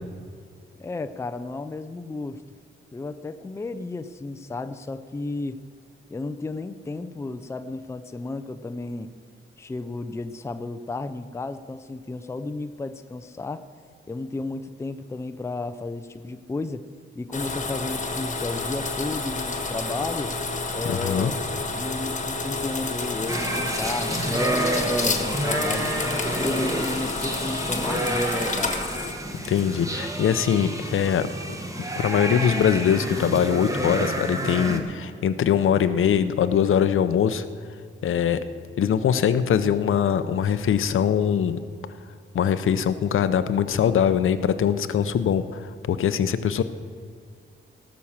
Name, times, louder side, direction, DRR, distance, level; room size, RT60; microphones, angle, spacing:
voice 1, 0.8-2.4 2.9-5.6 6.1-9.1 9.6-13.7 14.1-16.9 17.2-20.4 20.7-21.4 21.7-25.9 26.3-28.9, left 3 dB, 15° left, 10 dB, 0.4 m, -33 dB
sound 1, 17.3-29.9, left 3 dB, 35° left, 1.3 m, -30 dB
voice 2, 20.8-21.3 29.5-31.3 32.0-37.4 38.0-38.4 38.8-41.6 42.3-46.6, left 8 dB, 75° left, 11 dB, 0.7 m, -22 dB
sound 2, 23.3-34.8, right 1 dB, 15° right, 1.2 m, -29 dB
18.0 x 6.3 x 7.2 m, 2.1 s
wide cardioid pair, 155°, 21 cm